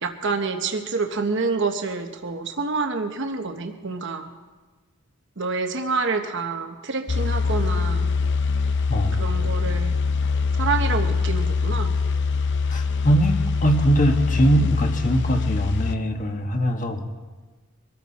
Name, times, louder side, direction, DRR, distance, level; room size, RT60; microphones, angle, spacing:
voice 1, 0.0-4.3 5.4-8.1 9.2-10.0 10.5-11.9, right 4 dB, 55° right, 4 dB, 1.0 m, -27 dB
sound 1, 7.1-16.0, left 4 dB, 55° left, 0.6 m, -23 dB
voice 2, 12.7-17.0, right 1 dB, 35° left, 4 dB, 1.5 m, -21 dB
24.0 x 13.5 x 4.2 m, 1.3 s
head